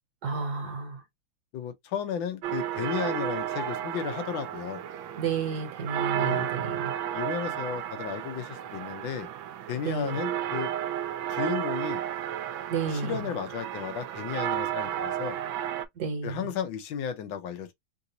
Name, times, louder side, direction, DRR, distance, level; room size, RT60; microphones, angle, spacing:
voice 1, 0.2-1.0 5.2-6.9 9.8-10.2 12.7-13.1 16.0-16.4, right 5 dB, 55° right, 1.5 m, -31 dB
voice 2, 1.5-4.8 6.2-6.5 7.1-9.3 9.7-10.7 11.3-12.0 12.9-15.4 16.2-17.7, left 8 dB, 75° left, 1.4 m, -34 dB
sound 1, 2.4-15.9, right 11 dB, 80° right, 1.4 m, -33 dB
3.9 x 2.5 x 2.8 m
omnidirectional pair, 2.2 m